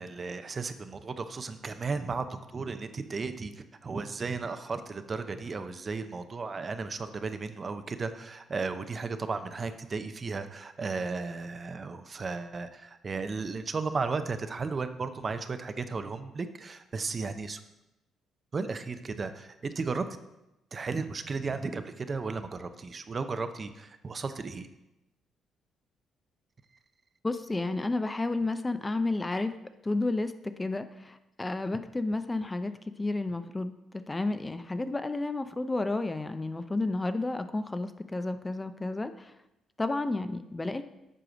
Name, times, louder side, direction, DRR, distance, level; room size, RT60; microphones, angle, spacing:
voice 1, 0.0-17.6 18.5-20.0 20.7-24.7, right 4 dB, 35° right, 10 dB, 0.6 m, -35 dB
voice 2, 27.2-29.5 29.8-30.3 30.6-32.7 33.0-39.3 39.8-40.8, left 2 dB, 20° left, 10 dB, 0.4 m, -31 dB
7.7 x 4.8 x 5.1 m, 0.92 s
cardioid pair, 90°, 0 cm